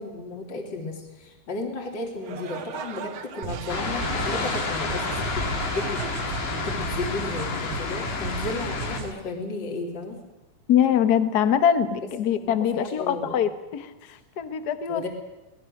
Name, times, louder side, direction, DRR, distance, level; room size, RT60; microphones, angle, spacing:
voice 1, 0.0-10.2 12.3-13.4 14.9-15.1, left 2 dB, 35° left, 2 dB, 3.5 m, -34 dB
sound 1, 2.2-7.4, right 7 dB, 60° right, 2.1 m, -40 dB
sound 2, 3.4-9.1, right 8 dB, 85° right, 2.6 m, -35 dB
sound 3, 3.7-9.0, left 5 dB, 90° left, 4.1 m, -30 dB
voice 2, 10.7-15.1, left 9 dB, 65° left, 10 dB, 1.0 m, -23 dB
25.5 x 19.0 x 6.6 m, 1.0 s
omnidirectional pair, 3.7 m